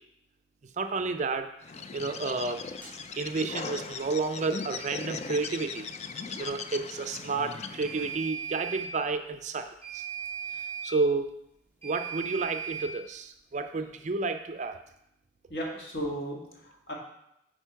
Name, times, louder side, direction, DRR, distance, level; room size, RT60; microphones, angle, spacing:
voice 1, 0.8-1.5 1.9-2.7 3.1-5.9 6.4-10.1 10.8-11.3 11.8-14.8, right 3 dB, 40° right, 8 dB, 0.4 m, -31 dB
Bird, 1.6-8.2, left 5 dB, 35° left, 0.4 m, -39 dB
sound 1, 2.8-3.0 7.8-8.9 9.8-10.9 11.8-12.9, right 8 dB, 10° left, 2.5 m, -37 dB
voice 2, 15.5-16.9, equal, 55° left, -2 dB, 1.9 m, -35 dB
9.1 x 4.4 x 4.5 m, 0.80 s
head